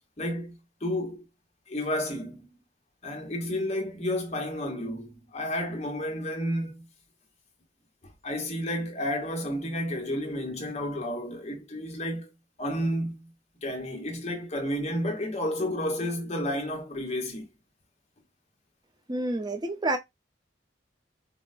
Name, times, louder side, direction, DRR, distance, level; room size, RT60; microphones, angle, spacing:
voice 1, 0.2-0.6 0.8-1.2 1.7-2.6 3.0-6.9 8.2-12.3 12.6-13.3 13.6-17.5, left 1 dB, 35° left, 1.0 m, -31 dB
voice 2, 19.1-20.0, right 2 dB, 25° right, 0.6 m, -28 dB
4.5 x 2.1 x 2.4 m
head